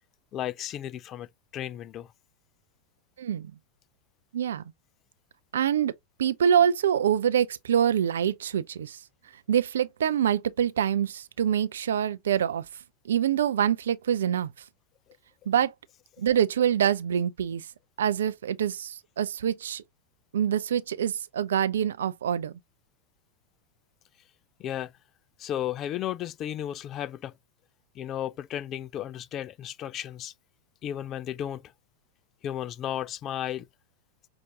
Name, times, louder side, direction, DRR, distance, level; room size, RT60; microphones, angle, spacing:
voice 1, 0.3-2.1 24.6-24.9 25.4-27.3 28.0-30.3 30.8-31.7 32.4-33.7, left 11 dB, 30° left, 0.3 m, -34 dB
voice 2, 3.2-3.5 4.3-4.6 5.5-5.9 6.2-9.0 9.5-12.6 13.0-14.5 15.5-15.7 16.2-17.7 18.0-19.8 20.3-22.5, right 9 dB, 65° right, 0.4 m, -25 dB
5.8 x 2.5 x 2.7 m
figure-of-eight pair, 90°, 0 cm